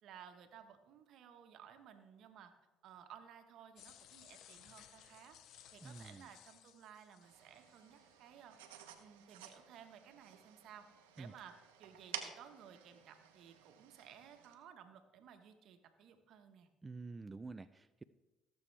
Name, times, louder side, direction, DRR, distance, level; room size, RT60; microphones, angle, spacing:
voice 1, 0.0-2.5 2.8-5.4 5.7-8.6 9.0-10.9 11.1-16.7, right 8 dB, 65° right, 7 dB, 1.3 m, -57 dB
sound 1, 3.8-8.2, left 10 dB, 70° left, 0.8 m, -60 dB
voice 2, 5.8-6.3 11.2-11.3 16.8-18.0, right 3 dB, 25° right, 11 dB, 0.4 m, -48 dB
sound 2, 7.2-14.5, right 10 dB, 90° right, 1.0 m, -53 dB
17.5 x 7.6 x 3.4 m, 1.1 s
supercardioid pair, 70°, 0 cm